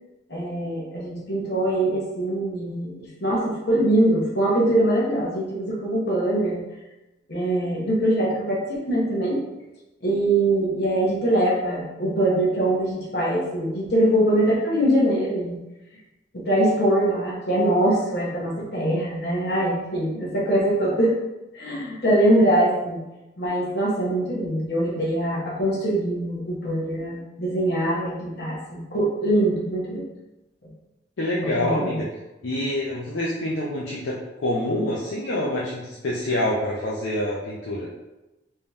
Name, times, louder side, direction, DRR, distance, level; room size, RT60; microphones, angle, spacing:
voice 1, 0.3-2.9 3.2-6.6 7.3-9.4 10.0-15.6 16.3-21.1 21.5-23.0 23.4-30.1 31.4-32.0, right 1 dB, 55° left, -4 dB, 0.9 m, -23 dB
voice 2, 31.2-32.0 32.4-37.9, left 1 dB, 85° left, -5 dB, 0.6 m, -26 dB
3.5 x 2.8 x 3.5 m, 1.0 s
head